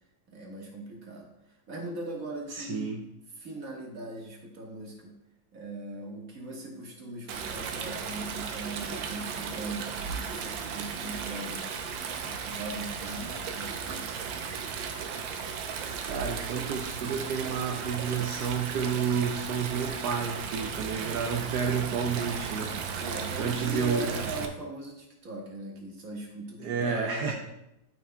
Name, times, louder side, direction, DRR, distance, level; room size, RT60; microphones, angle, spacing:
voice 1, 0.3-1.3 1.7-3.0 3.3-5.2 5.5-14.1 23.0-27.3, right 2 dB, 45° right, -1 dB, 1.8 m, -40 dB
voice 2, 2.5-3.0 16.0-22.7 23.4-24.1 26.6-27.3, right 6 dB, 70° right, 2 dB, 1.1 m, -30 dB
Stream, 7.3-24.5, right 6 dB, 90° right, 1.5 m, -35 dB
12.5 x 5.7 x 2.2 m, 0.89 s
omnidirectional pair, 2.1 m